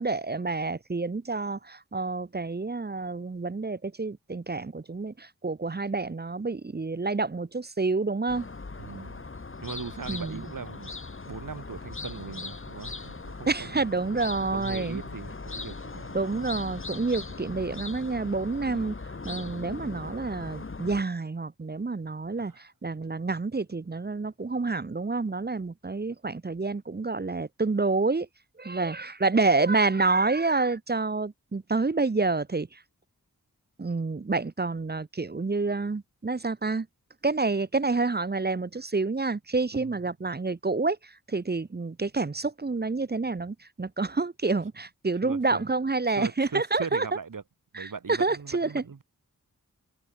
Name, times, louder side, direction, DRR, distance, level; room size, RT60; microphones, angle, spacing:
voice 1, 0.0-8.5 10.1-10.4 13.5-15.0 16.1-18.9 19.2-28.3 28.6-32.8 33.8-36.9 37.2-41.0 41.3-47.1 47.7-48.8, right 3 dB, 25° right, 0.7 m, -28 dB
sound 1, 8.3-21.0, left 3 dB, 35° left, 1.3 m, -39 dB
voice 2, 8.8-9.3 9.6-11.0 11.2-13.9 14.5-16.4 22.4-22.6 39.7-40.0 45.2-45.7 46.1-47.4 47.7-49.0, right 5 dB, 60° right, 1.3 m, -40 dB
cardioid pair, 45°, 36 cm